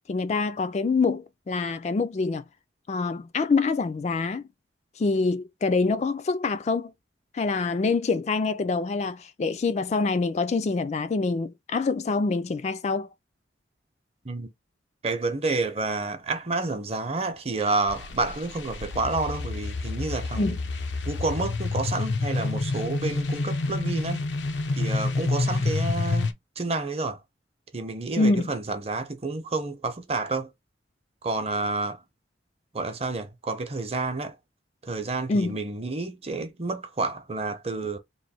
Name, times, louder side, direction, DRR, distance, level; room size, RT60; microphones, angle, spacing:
voice 1, 0.0-2.4 2.9-4.4 5.0-6.9 7.3-13.1 20.4-20.6 28.2-28.5 35.3-35.6, left 3 dB, 40° left, 0.3 m, -25 dB
voice 2, 15.0-20.6 21.1-24.3 24.8-27.2 27.7-30.5 31.2-32.0 32.7-34.4 34.8-38.0, right 3 dB, 35° right, 0.7 m, -29 dB
sound 1, 17.9-26.3, left 3 dB, 90° left, 0.7 m, -28 dB
3.1 x 2.6 x 4.2 m
head